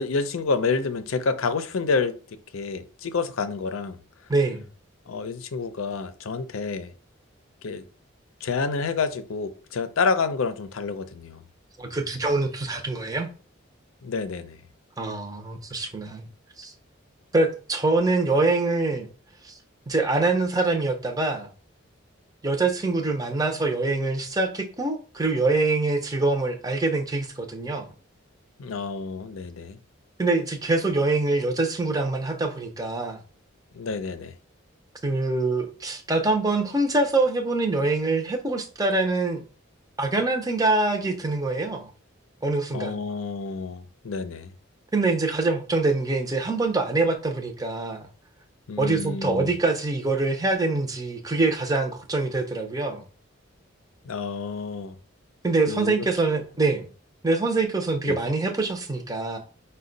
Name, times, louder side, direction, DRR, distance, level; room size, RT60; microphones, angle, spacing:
voice 1, 0.0-2.2 2.5-4.0 5.1-6.9 7.6-7.8 8.4-11.4 14.0-14.6 28.6-29.8 33.7-34.3 42.7-44.5 48.7-49.6 54.0-54.9 55.7-56.4 58.1-58.2, left 4 dB, 85° left, 0.5 m, -28 dB
voice 2, 4.3-4.6 11.8-13.3 15.0-16.3 16.6-16.7 17.3-19.1 19.4-19.6 19.9-21.5 22.4-27.9 30.2-33.2 35.0-39.4 40.0-41.9 42.4-43.0 44.9-48.0 48.8-53.0 55.4-56.9 57.2-59.4, right 3 dB, 20° right, 0.6 m, -24 dB
5.2 x 2.2 x 3.8 m
head